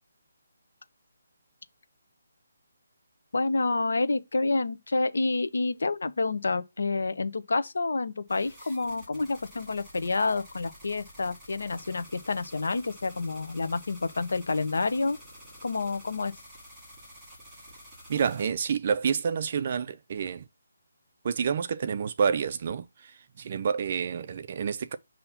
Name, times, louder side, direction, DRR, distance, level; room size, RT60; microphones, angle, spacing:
voice 1, 3.3-15.2 15.6-16.3, left 3 dB, 70° left, 0.7 m, -28 dB
sound 1, 8.3-18.5, equal, 5° right, 2.0 m, -50 dB
voice 2, 18.1-20.5 21.2-23.1 23.4-25.0, right 6 dB, 30° right, 0.4 m, -28 dB
6.8 x 2.8 x 5.7 m
hypercardioid pair, 180°, 0 cm